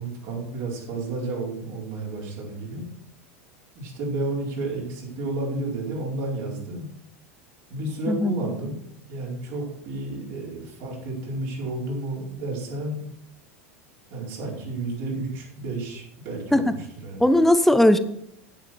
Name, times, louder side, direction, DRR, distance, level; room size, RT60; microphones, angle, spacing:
voice 1, 0.0-2.9 3.7-6.9 7.7-8.8 9.1-13.0 14.1-17.3, right 2 dB, 55° right, -3 dB, 4.9 m, -31 dB
voice 2, 17.2-18.0, left 1 dB, 5° left, 11 dB, 0.9 m, -18 dB
10.5 x 9.4 x 4.7 m, 0.73 s
figure-of-eight pair, 80°, 8 cm